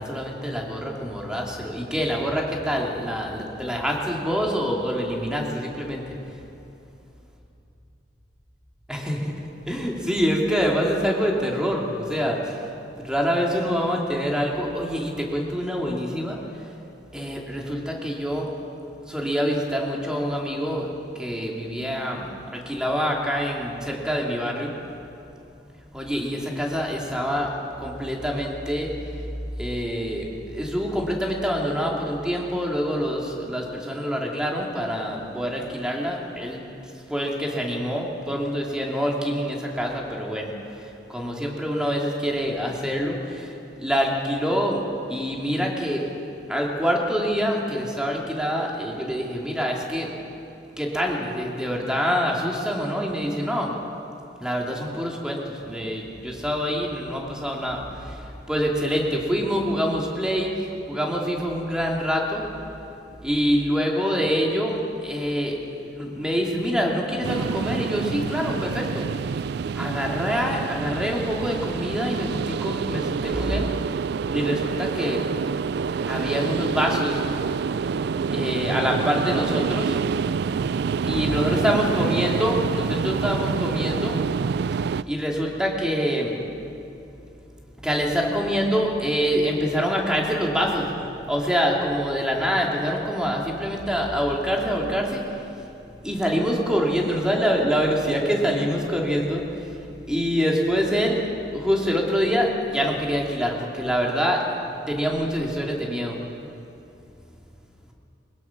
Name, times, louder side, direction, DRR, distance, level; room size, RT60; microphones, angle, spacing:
voice 1, 0.0-6.0 8.9-12.7 13.0-16.4 17.1-18.5 19.0-20.9 21.1-24.7 25.9-29.2 29.6-44.8 45.1-46.2 46.5-50.1 50.8-53.7 54.4-62.5 63.2-69.1 69.7-73.7 74.3-75.4 76.1-77.2 77.8-78.0 78.3-80.0 81.1-84.2 84.7-86.4 87.8-90.9 91.3-95.7 96.0-99.8 100.1-104.5 104.8-106.2, equal, 5° right, -1 dB, 2.7 m, -26 dB
sound 1, 67.2-85.0, right 5 dB, 65° right, 0.4 m, -27 dB
22.0 x 20.5 x 6.0 m, 2.7 s
head